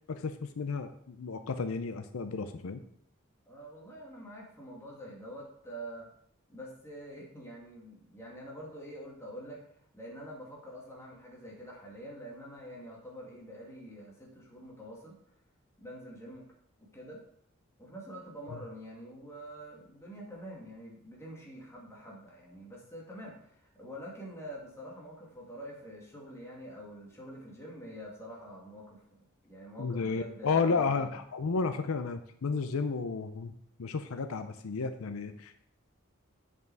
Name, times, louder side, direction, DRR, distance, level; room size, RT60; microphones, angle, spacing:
voice 1, 0.1-2.8 18.5-18.6 29.8-33.5 33.8-35.6, left 4 dB, 80° left, 9 dB, 0.5 m, -32 dB
voice 2, 3.5-6.1 6.5-15.2 15.8-16.4 16.8-17.2 17.8-31.2, equal, 15° left, -4 dB, 2.1 m, -46 dB
7.9 x 5.2 x 4.7 m, 0.69 s
head